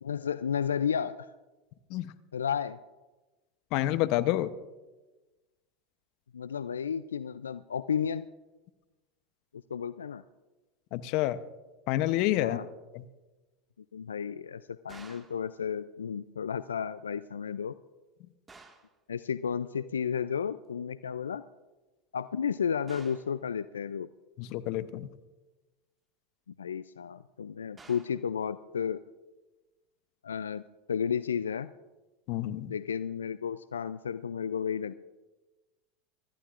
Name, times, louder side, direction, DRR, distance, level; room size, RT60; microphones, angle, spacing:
voice 1, 0.0-1.3 2.3-2.8 6.3-8.3 9.7-10.2 12.4-12.6 13.9-17.8 19.1-21.4 22.1-24.1 26.6-29.0 30.2-30.6 30.9-31.7 32.7-34.9, left 7 dB, 90° left, 15 dB, 0.3 m, -32 dB
voice 2, 3.7-4.5 10.9-11.4 11.9-12.6 12.9-13.1 24.4-25.1 32.3-32.7, left 15 dB, 60° left, 14 dB, 0.7 m, -28 dB
sound 1, 14.9-15.4 18.5-19.0 22.9-23.4 27.8-28.2, right 3 dB, 20° right, 1.7 m, -52 dB
24.5 x 14.0 x 2.5 m, 1.2 s
hypercardioid pair, 90°, 0 cm